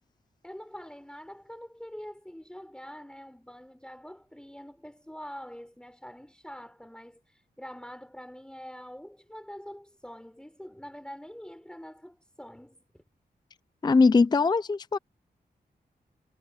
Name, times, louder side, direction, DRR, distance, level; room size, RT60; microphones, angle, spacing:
voice 1, 0.4-13.0, equal, 5° left, 3.8 m, -45 dB
voice 2, 13.8-15.0, left 4 dB, 25° left, 0.4 m, -21 dB
cardioid pair, 70°, 17 cm